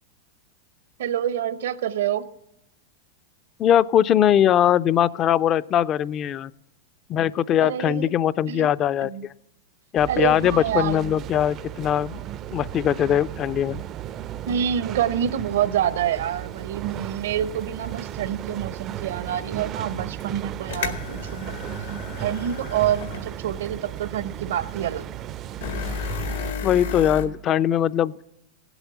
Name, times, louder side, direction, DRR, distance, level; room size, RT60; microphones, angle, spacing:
voice 1, 1.0-2.3 7.6-8.1 8.5-8.7 9.0-9.3 10.1-11.2 14.5-21.5 22.2-25.0, right 10 dB, 75° right, 15 dB, 0.8 m, -27 dB
voice 2, 3.6-6.5 7.1-9.3 9.9-12.2 12.5-13.8 26.6-28.1, left 10 dB, 35° left, 18 dB, 0.4 m, -21 dB
sound 1, 10.0-26.5, right 12 dB, 35° right, 0.4 m, -35 dB
sound 2, 20.2-20.3 20.7-23.3 23.7-23.8 25.6-27.3, left 6 dB, 85° left, 1.9 m, -32 dB
16.5 x 8.0 x 7.1 m, 0.85 s
hypercardioid pair, 125°, 0 cm